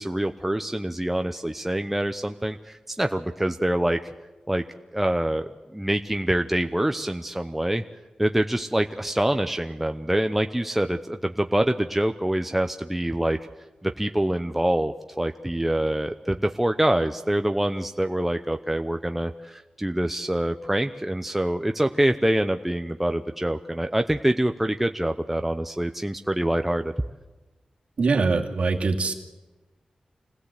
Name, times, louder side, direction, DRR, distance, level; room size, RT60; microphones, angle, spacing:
voice 1, 0.0-4.1 4.5-4.6 4.9-7.8 8.2-13.4 13.8-26.9, right 1 dB, 10° right, 6 dB, 0.7 m, -25 dB
voice 2, 28.0-29.1, right 4 dB, 60° right, 2 dB, 2.4 m, -23 dB
26.0 x 16.5 x 8.2 m, 1.2 s
wide cardioid pair, 95°, 2 cm